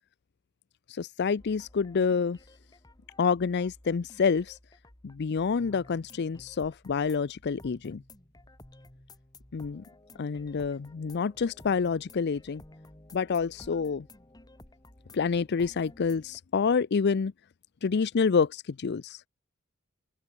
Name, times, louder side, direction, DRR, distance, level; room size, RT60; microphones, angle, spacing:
voice 1, 0.9-2.4 3.2-4.6 5.0-8.0 9.5-9.8 10.2-12.6 13.1-14.1 15.1-17.3 17.8-19.2, left 5 dB, 55° left, 0.5 m, -28 dB
sound 1, 1.4-16.4, left 1 dB, 20° left, 1.8 m, -54 dB
open air
head